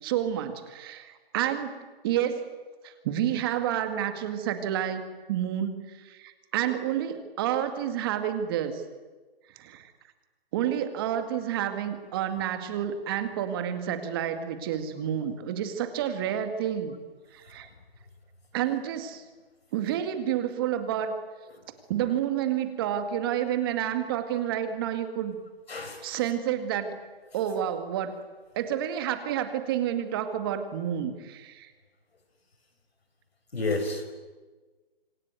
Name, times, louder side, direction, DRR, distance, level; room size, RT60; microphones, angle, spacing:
voice 1, 0.0-2.5 2.8-8.8 9.6-9.9 10.5-17.0 17.3-17.7 18.5-19.2 19.7-21.2 21.9-25.4 26.0-27.0 27.3-28.2 28.5-31.7, right 10 dB, 25° right, 9 dB, 2.1 m, -29 dB
voice 2, 25.7-26.1 33.5-34.1, left 2 dB, 90° left, 8 dB, 5.7 m, -31 dB
26.5 x 23.0 x 9.4 m, 1.3 s
hypercardioid pair, 160°, 30 cm